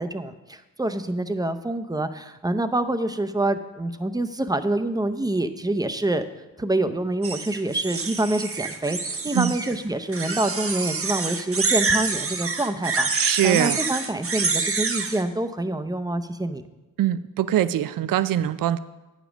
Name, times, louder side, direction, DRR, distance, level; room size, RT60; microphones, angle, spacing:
voice 1, 0.0-6.3 6.6-16.7, right 2 dB, 10° right, 9 dB, 0.6 m, -26 dB
sound 1, 7.2-9.8 10.1-15.2, right 4 dB, 40° right, 1.0 m, -27 dB
voice 2, 13.1-13.8 17.0-18.8, right 11 dB, 70° right, 15 dB, 0.5 m, -23 dB
8.9 x 5.2 x 6.1 m, 1.1 s
cardioid pair, 55°, 35 cm